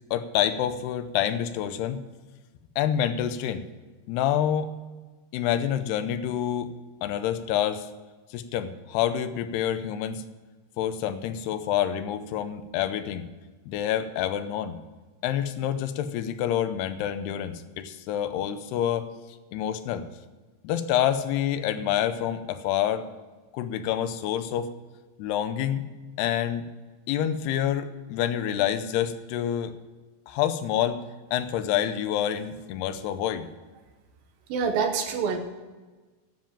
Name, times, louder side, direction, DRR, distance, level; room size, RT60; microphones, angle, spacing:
voice 1, 0.1-2.0 2.8-3.6 4.1-4.7 5.3-6.7 7.0-7.9 8.3-10.2 10.8-13.3 13.7-14.8 15.2-19.1 19.5-20.1 20.6-23.0 23.5-24.7 25.2-25.8 26.2-26.7 27.1-29.7 30.3-31.0 31.3-33.5, left 10 dB, 85° left, 11 dB, 2.8 m, -27 dB
voice 2, 34.5-35.4, right 6 dB, 70° right, 6 dB, 2.6 m, -26 dB
10.0 x 7.5 x 8.8 m, 1.3 s
omnidirectional pair, 4.6 m